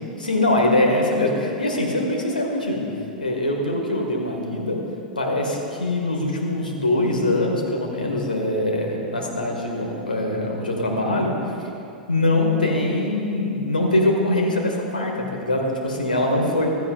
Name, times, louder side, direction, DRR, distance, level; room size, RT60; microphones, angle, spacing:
voice 1, 0.2-2.9 3.2-4.8 5.2-11.3 12.1-16.7, left 1 dB, 85° left, 0 dB, 1.8 m, -23 dB
15.5 x 13.5 x 2.5 m, 2.6 s
figure-of-eight pair, 95°, 5 cm